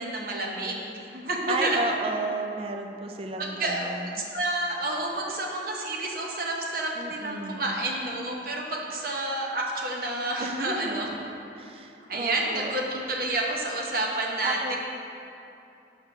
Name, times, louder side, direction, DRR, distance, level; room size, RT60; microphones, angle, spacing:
voice 1, 0.0-1.8 3.4-3.9 4.3-11.1 12.1-14.8, right 2 dB, 55° right, -1 dB, 0.9 m, -29 dB
voice 2, 1.5-4.2 7.0-7.8 10.4-11.1 11.5-12.7 14.4-14.8, right 3 dB, 30° right, 4 dB, 0.4 m, -33 dB
5.7 x 5.5 x 5.7 m, 2.8 s
head